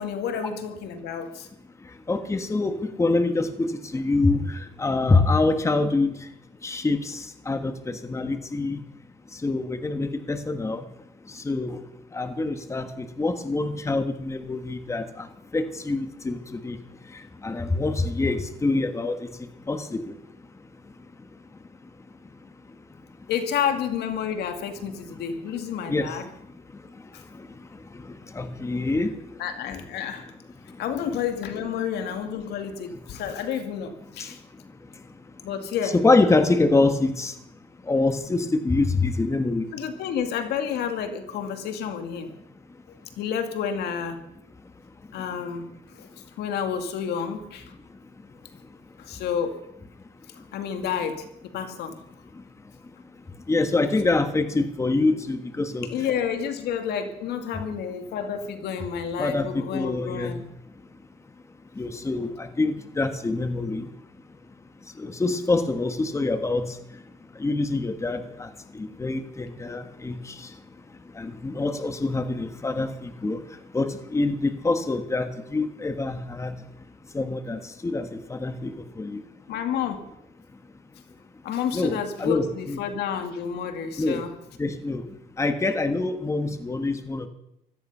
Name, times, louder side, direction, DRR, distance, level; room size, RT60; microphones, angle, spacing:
voice 1, 0.0-1.5 23.3-26.3 27.1-27.2 29.4-30.3 30.8-34.4 35.4-35.9 39.7-42.3 42.9-44.2 45.1-45.7 46.0-46.1 46.4-47.7 49.0-49.5 50.5-51.9 55.9-60.4 79.5-80.0 81.4-84.3, left 8 dB, 75° left, 7 dB, 2.2 m, -30 dB
voice 2, 2.1-6.1 6.6-8.8 9.4-10.8 11.4-11.8 12.1-15.3 15.5-16.8 17.4-19.2 19.7-20.0 25.9-26.1 28.3-29.1 35.8-37.3 37.9-39.6 53.5-56.0 59.2-60.3 61.8-63.9 65.0-66.7 67.4-68.5 68.7-70.3 71.2-73.4 73.7-76.5 77.1-79.2 81.7-82.8 84.0-84.2 84.6-85.0 85.4-87.3, left 3 dB, 15° left, 9 dB, 1.4 m, -25 dB
17.0 x 13.5 x 5.6 m, 0.82 s
cardioid pair, 110°, 17 cm